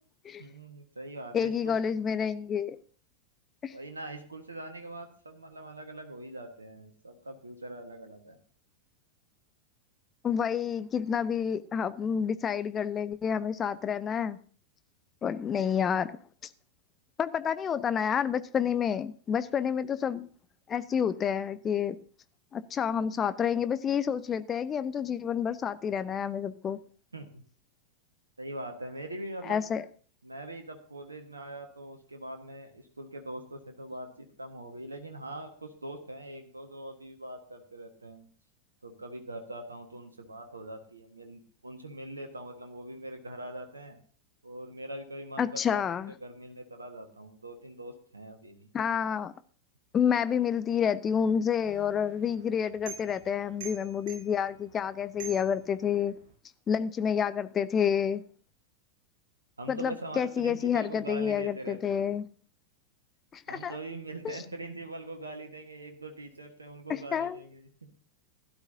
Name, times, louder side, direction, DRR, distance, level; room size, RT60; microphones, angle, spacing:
voice 1, 0.4-1.8 3.7-8.4 27.1-27.4 28.4-29.7 30.2-38.3 38.8-44.0 44.4-45.8 46.1-48.7 59.6-62.1 63.5-67.9, right 1 dB, 80° right, 1.5 m, -42 dB
voice 2, 1.3-2.8 3.6-3.7 10.2-14.4 15.2-16.2 17.2-20.3 20.7-22.0 22.5-26.8 29.5-29.8 45.4-46.1 48.7-49.3 49.9-56.1 56.7-58.2 59.7-62.3 63.3-63.8 64.2-64.4 66.9-67.4, left 7 dB, 25° left, 0.7 m, -29 dB
sound 1, 51.6-56.3, right 7 dB, 50° right, 7.5 m, -48 dB
16.0 x 12.0 x 2.8 m
figure-of-eight pair, 90°, 0 cm